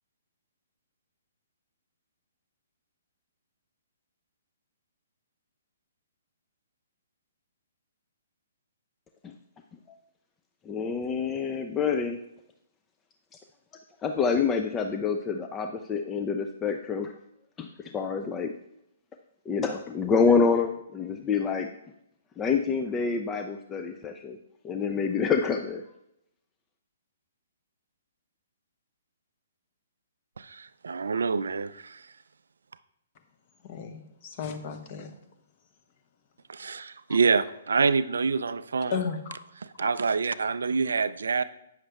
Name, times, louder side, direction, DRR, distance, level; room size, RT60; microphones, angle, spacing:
voice 1, 10.7-12.2 14.0-17.1 17.6-18.5 19.5-21.7 22.4-24.4 24.6-25.8, left 5 dB, 15° left, 5 dB, 0.5 m, -27 dB
voice 2, 30.4-32.1 36.5-39.0 39.8-41.4, right 5 dB, 75° right, 14 dB, 0.4 m, -26 dB
voice 3, 33.6-35.1 38.9-39.4 39.8-39.9, left 6 dB, 40° left, 6 dB, 1.1 m, -34 dB
8.8 x 6.4 x 3.5 m, 0.80 s
figure-of-eight pair, 130°, 0 cm